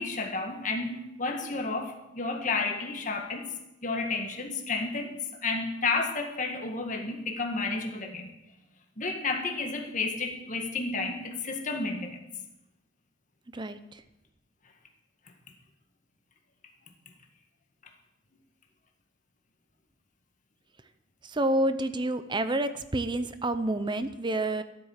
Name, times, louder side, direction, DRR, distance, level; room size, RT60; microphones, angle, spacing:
voice 1, 0.0-3.5 3.8-5.1 5.4-8.3 9.0-12.2, left 3 dB, 45° left, 3 dB, 1.8 m, -31 dB
voice 2, 21.3-24.6, right 1 dB, 25° right, 11 dB, 0.7 m, -28 dB
13.5 x 9.2 x 7.4 m, 0.91 s
head